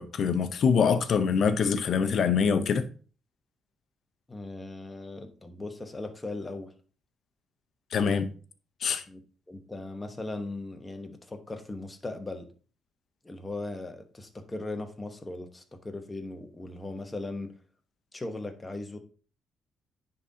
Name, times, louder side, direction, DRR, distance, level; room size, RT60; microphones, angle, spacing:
voice 1, 0.0-2.9 7.9-8.3 8.8-9.0, left 6 dB, 60° left, 0.7 m, -24 dB
voice 2, 4.3-6.7 9.1-12.5 13.2-17.5 18.1-19.0, left 2 dB, 15° left, 1.1 m, -38 dB
9.9 x 3.8 x 2.8 m
cardioid pair, 90°, 0 cm